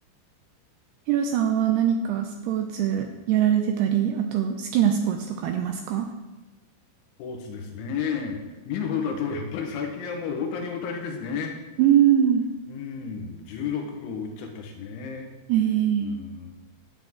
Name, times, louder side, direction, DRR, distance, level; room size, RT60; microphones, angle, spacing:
voice 1, 1.1-6.1 11.8-12.5 15.5-16.1, right 9 dB, 85° right, 5 dB, 2.3 m, -22 dB
voice 2, 7.2-11.5 12.7-15.3 16.0-16.5, left 6 dB, 85° left, 3 dB, 3.7 m, -32 dB
12.5 x 7.8 x 3.7 m, 1.1 s
omnidirectional pair, 5.4 m